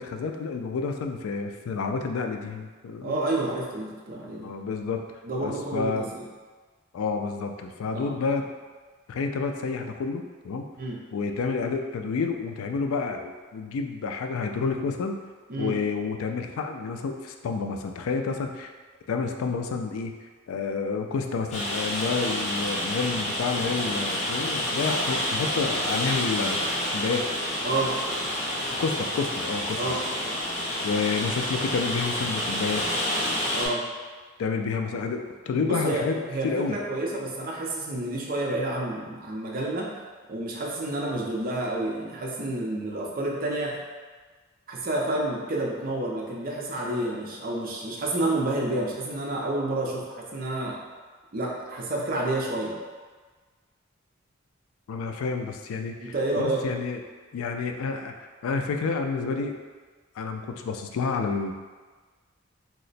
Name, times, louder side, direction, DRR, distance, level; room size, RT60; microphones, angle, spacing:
voice 1, 0.0-3.2 4.4-5.0 5.4-6.1 6.9-8.5 9.1-10.7 11.1-15.2 15.6-18.7 19.1-20.1 20.5-26.6 26.9-27.3 28.8-29.8 30.8-32.8 34.4-36.8 54.9-57.0 57.3-58.1 58.4-59.6 60.2-61.5, left 4 dB, 90° left, 5 dB, 0.3 m, -29 dB
voice 2, 3.0-4.5 5.2-6.3 7.9-8.1 10.8-11.0 15.5-15.8 27.6-28.0 29.8-30.0 33.5-33.8 35.6-36.0 36.3-39.9 40.3-43.8 44.7-50.8 51.3-52.8 56.0-56.6, right 2 dB, 45° right, -2 dB, 0.6 m, -29 dB
Rain, 21.5-33.7, left 1 dB, 35° left, 0.7 m, -29 dB
2.9 x 2.1 x 4.0 m, 1.4 s
head